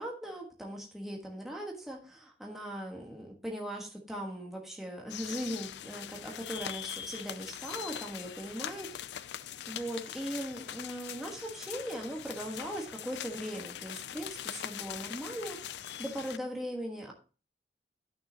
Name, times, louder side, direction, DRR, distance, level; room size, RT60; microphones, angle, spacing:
voice 1, 0.0-9.0 9.7-17.1, equal, ahead, -1 dB, 1.4 m, -39 dB
sound 1, 5.1-16.4, left 10 dB, 70° left, 0.4 m, -42 dB
11.0 x 6.5 x 2.9 m, 0.36 s
head